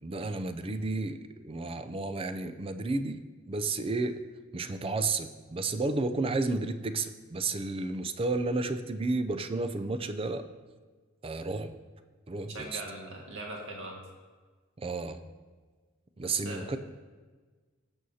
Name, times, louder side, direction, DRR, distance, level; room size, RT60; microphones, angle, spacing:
voice 1, 0.0-4.2 4.5-10.4 11.2-11.7 12.3-12.8 14.8-15.2 16.2-16.8, right 3 dB, 25° right, 9 dB, 0.4 m, -32 dB
voice 2, 12.5-14.0 16.2-16.6, right 2 dB, 65° right, 0 dB, 1.8 m, -41 dB
18.0 x 6.2 x 2.8 m, 1.4 s
head